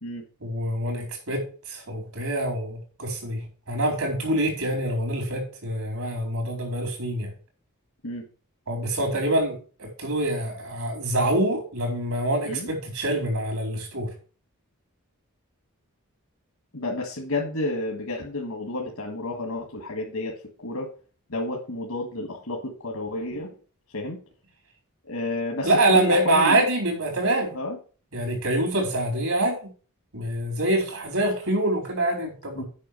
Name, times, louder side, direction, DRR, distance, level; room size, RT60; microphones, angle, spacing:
voice 1, 0.4-7.3 8.7-14.1 25.6-27.6 28.1-29.7 30.1-32.6, right 1 dB, 80° right, 2 dB, 4.1 m, -25 dB
voice 2, 16.7-20.9 21.3-23.5 23.9-24.2 25.1-26.6 27.5-27.8 32.6-32.7, left 2 dB, 85° left, 0 dB, 1.8 m, -30 dB
8.4 x 5.8 x 6.6 m, 0.39 s
head